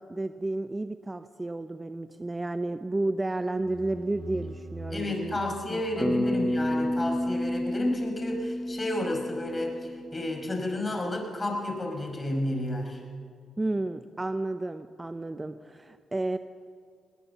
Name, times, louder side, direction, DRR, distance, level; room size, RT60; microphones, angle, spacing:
voice 1, 0.0-5.4 5.7-6.3 13.6-16.4, right 2 dB, 20° right, 10 dB, 0.7 m, -32 dB
sound 1, 3.3-6.9, right 2 dB, 65° right, 5.7 m, -44 dB
voice 2, 4.9-13.0, left 1 dB, 25° left, 2 dB, 5.5 m, -31 dB
Bass guitar, 6.0-10.4, left 1 dB, ahead, 1.0 m, -30 dB
19.5 x 19.0 x 7.1 m, 2.2 s
supercardioid pair, 60°, 0 cm